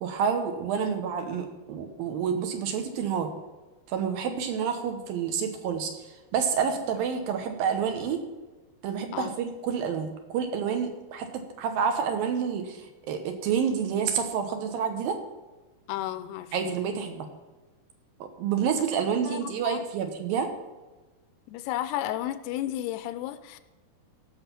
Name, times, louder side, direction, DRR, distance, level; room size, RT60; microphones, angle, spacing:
voice 1, 0.0-3.3 3.9-8.2 8.8-15.2 16.5-17.3 18.2-20.5, right 7 dB, 70° right, 6 dB, 2.5 m, -29 dB
voice 2, 0.8-1.4 9.1-9.3 15.9-16.8 18.7-18.8 19.3-19.8 21.5-23.6, left 13 dB, 85° left, 13 dB, 2.6 m, -34 dB
16.0 x 6.5 x 5.7 m, 1.2 s
omnidirectional pair, 4.8 m